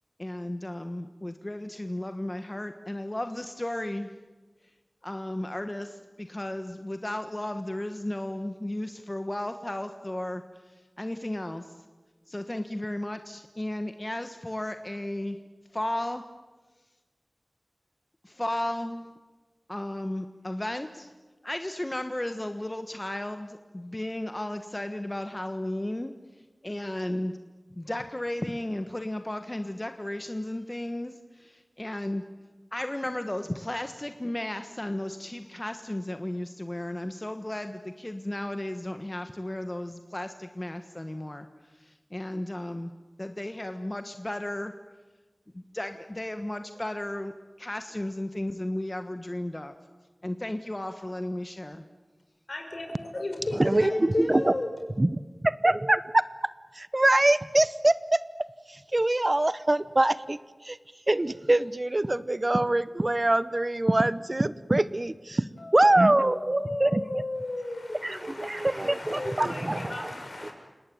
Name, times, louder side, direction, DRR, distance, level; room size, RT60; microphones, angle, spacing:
voice 1, 0.2-4.2 5.0-11.8 12.3-15.4 15.7-16.2 18.2-19.0 19.7-21.1 21.4-27.4 27.7-32.2 32.7-42.9 43.2-44.7 45.5-47.3 47.6-49.7 50.2-51.8 66.2-66.4, left 1 dB, 30° left, 8 dB, 1.3 m, -34 dB
voice 2, 52.5-52.9 53.1-54.7 65.6-70.5, left 2 dB, 65° left, 3 dB, 5.8 m, -34 dB
voice 3, 53.6-54.5 55.0-56.2 56.8-58.2 58.7-60.4 60.6-60.8 61.1-65.4 65.7-67.0 68.0-70.1 70.4-70.5, right 1 dB, 40° right, 16 dB, 0.8 m, -24 dB
29.5 x 18.5 x 9.3 m, 1.3 s
wide cardioid pair, 50°, 0 cm